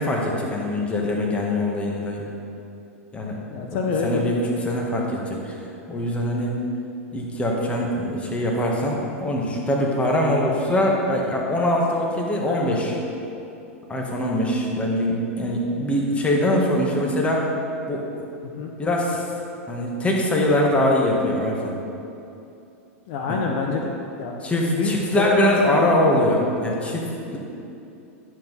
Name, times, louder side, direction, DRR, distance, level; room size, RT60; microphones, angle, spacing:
voice 1, 0.0-2.2 3.1-3.7 4.0-4.4 4.6-5.5 5.9-6.6 7.1-13.0 13.9-17.5 17.9-18.0 18.8-19.2 19.7-21.7 23.3-23.4 24.4-27.4, left 1 dB, 15° left, -2 dB, 1.7 m, -23 dB
voice 2, 3.5-4.7 18.4-18.7 23.1-24.3 24.7-26.3, left 4 dB, 55° left, 1 dB, 0.9 m, -27 dB
10.5 x 7.3 x 4.1 m, 2.7 s
hypercardioid pair, 100°, 7 cm